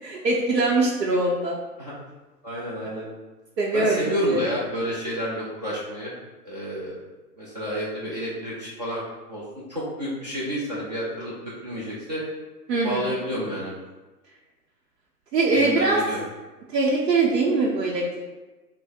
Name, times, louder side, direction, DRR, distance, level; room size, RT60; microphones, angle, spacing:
voice 1, 0.0-1.6 3.6-4.4 12.7-13.1 15.3-16.0 16.7-18.2, right 3 dB, 90° right, -3 dB, 0.7 m, -22 dB
voice 2, 2.4-3.1 3.7-6.1 6.5-7.0 7.4-9.0 9.3-9.4 9.7-12.2 12.8-13.7 15.5-16.2, equal, 30° right, -7 dB, 0.4 m, -30 dB
3.1 x 2.0 x 4.1 m, 1.2 s
hypercardioid pair, 130°, 48 cm